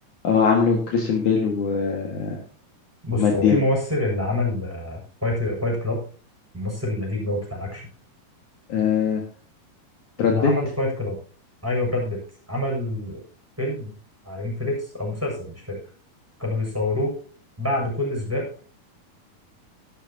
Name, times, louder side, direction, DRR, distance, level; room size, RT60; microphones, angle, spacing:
voice 1, 0.2-2.4 3.2-3.6 8.7-9.2 10.2-10.5, left 6 dB, 55° left, 0 dB, 3.1 m, -21 dB
voice 2, 3.0-6.0 6.5-7.8 10.2-11.2 11.6-12.2 12.5-13.2 13.6-13.9 14.2-15.8 16.4-17.1 17.6-18.4, left 1 dB, 5° right, -2 dB, 6.6 m, -26 dB
15.0 x 12.0 x 2.9 m, 0.41 s
omnidirectional pair, 4.4 m